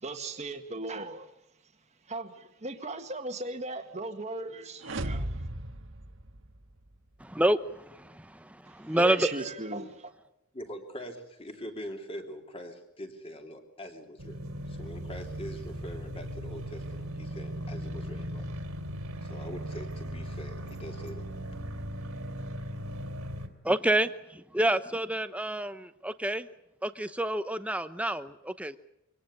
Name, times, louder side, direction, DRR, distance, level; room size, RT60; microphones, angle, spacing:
voice 1, 0.0-1.3 2.1-5.3 8.9-10.1, right 2 dB, 30° right, 1.8 m, -37 dB
sound 1, 4.8-6.9, right 1 dB, 60° right, 1.6 m, -36 dB
voice 2, 7.2-9.4 23.6-26.5 26.8-28.8, right 1 dB, 5° right, 0.8 m, -28 dB
voice 3, 10.5-18.5 19.2-21.3, equal, 25° left, 3.3 m, -43 dB
sound 2, 14.2-23.5, equal, 75° right, 2.9 m, -38 dB
24.5 x 18.0 x 9.8 m
head